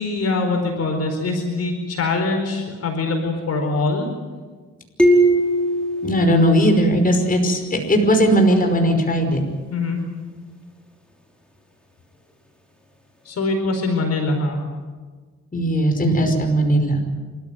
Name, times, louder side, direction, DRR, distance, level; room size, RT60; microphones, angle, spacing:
voice 1, 0.0-4.1 9.7-10.0 13.2-14.6, left 3 dB, 55° left, 4 dB, 4.6 m, -23 dB
sound 1, 5.0-7.6, right 1 dB, 5° left, 5.1 m, -20 dB
voice 2, 6.0-9.4 15.5-17.0, equal, 30° left, 4 dB, 5.4 m, -18 dB
28.0 x 14.0 x 9.3 m, 1.4 s
cardioid pair, 90°, 30 cm